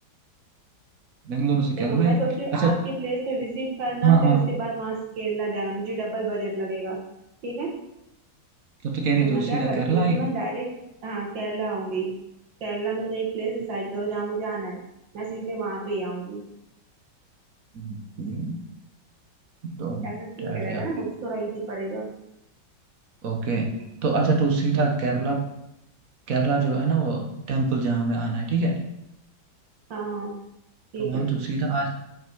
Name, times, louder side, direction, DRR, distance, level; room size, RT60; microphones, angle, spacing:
voice 1, 1.2-2.2 2.5-2.7 4.0-4.5 8.8-10.2 17.7-18.6 19.6-20.1 20.4-20.8 23.2-23.7 24.0-25.4 26.3-28.8 31.0-31.9, right 4 dB, 50° right, 2 dB, 1.3 m, -23 dB
voice 2, 1.8-7.0 7.4-7.7 9.2-10.7 11.0-12.1 12.6-14.8 15.1-16.4 20.0-22.1 25.2-25.4 29.9-30.3 30.9-31.3, right 3 dB, 70° right, -2 dB, 2.3 m, -30 dB
5.7 x 5.3 x 4.6 m, 0.85 s
omnidirectional pair, 2.2 m